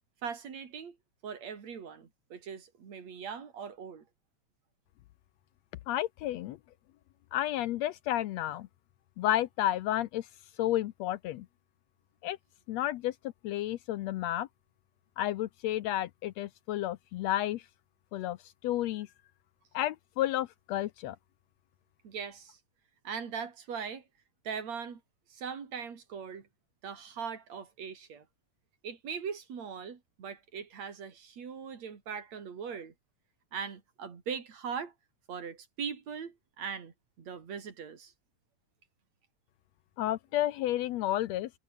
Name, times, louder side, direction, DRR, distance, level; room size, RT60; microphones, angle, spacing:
voice 1, 0.2-1.0 1.2-4.0 22.0-22.6 23.0-24.0 24.4-25.0 25.3-26.5 26.8-28.3 28.8-32.9 33.5-34.9 35.3-38.1, right 6 dB, 60° right, 4.3 m, -40 dB
voice 2, 5.9-6.6 7.3-8.7 9.2-10.3 10.6-11.5 12.2-12.4 12.7-13.1 13.4-14.5 15.2-17.6 18.1-18.4 18.6-19.1 19.7-21.2 40.0-41.5, left 13 dB, 75° left, 1.7 m, -31 dB
omnidirectional pair, 3.4 m